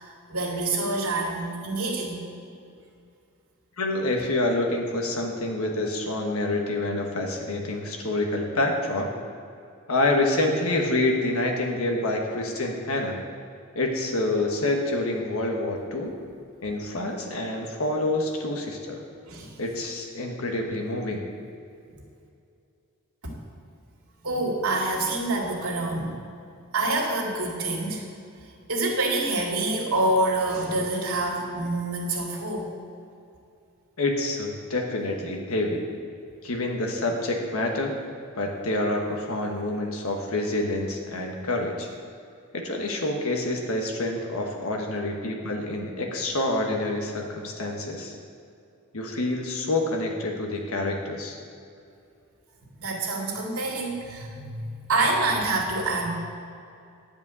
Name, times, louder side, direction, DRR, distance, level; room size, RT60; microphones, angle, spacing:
voice 1, 0.0-2.2 19.3-19.5 23.2-23.3 24.2-26.2 26.7-28.0 28.7-32.7 52.8-56.1, right 2 dB, 90° right, -2 dB, 2.3 m, -27 dB
voice 2, 3.8-9.1 9.9-13.2 13.7-16.1 16.6-19.0 19.6-21.2 34.0-35.8 36.4-37.9 38.3-41.9 42.5-48.1 48.9-51.4, left 2 dB, 75° left, 1 dB, 1.5 m, -27 dB
10.5 x 5.2 x 8.2 m, 2.5 s
head